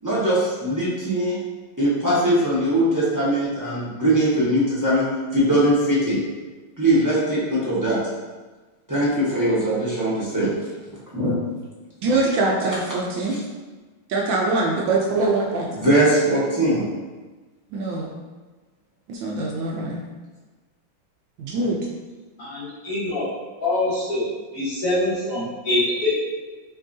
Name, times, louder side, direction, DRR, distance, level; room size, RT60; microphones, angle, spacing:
voice 1, 0.0-1.4 1.8-5.0 5.3-6.2 6.8-8.0 8.9-10.5 11.1-11.4 13.2-13.4 15.7-16.9, right 1 dB, 15° right, -10 dB, 0.9 m, -21 dB
voice 2, 12.0-13.4 14.1-15.7 17.7-18.1 19.1-20.0 21.4-21.8, right 2 dB, 75° right, -2 dB, 1.2 m, -23 dB
voice 3, 22.4-23.2 23.6-24.3 24.5-26.1, left 2 dB, 50° left, -7 dB, 1.3 m, -24 dB
6.0 x 2.9 x 2.7 m, 1.3 s
omnidirectional pair, 2.3 m